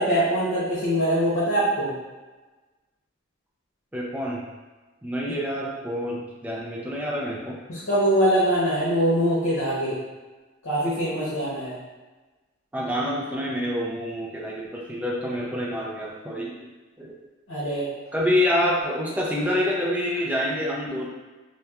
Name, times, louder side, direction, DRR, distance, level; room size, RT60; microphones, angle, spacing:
voice 1, 0.0-1.9 7.7-9.9 10.6-11.7 17.5-17.8, equal, 85° left, -9 dB, 0.8 m, -23 dB
voice 2, 3.9-4.4 5.0-7.6 12.7-16.7 17.0-17.1 18.1-21.1, left 1 dB, 10° right, -4 dB, 0.4 m, -27 dB
2.8 x 2.2 x 2.3 m, 1.2 s
head